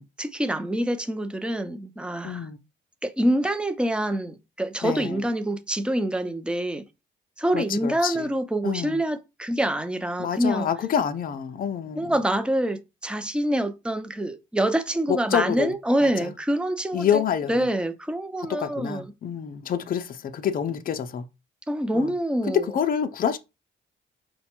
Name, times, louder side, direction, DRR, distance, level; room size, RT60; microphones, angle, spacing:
voice 1, 0.2-2.5 3.0-6.8 7.4-10.7 12.0-17.2 17.5-19.1 21.7-22.6, right 1 dB, 5° right, 0.6 m, -26 dB
voice 2, 2.2-2.6 4.8-5.2 7.5-8.3 8.6-9.0 10.2-12.1 15.1-15.7 16.0-16.3 16.9-17.7 18.6-21.2 21.9-22.1 22.5-23.4, left 8 dB, 45° left, 0.5 m, -27 dB
5.0 x 2.2 x 4.3 m
cardioid pair, 90°, 20 cm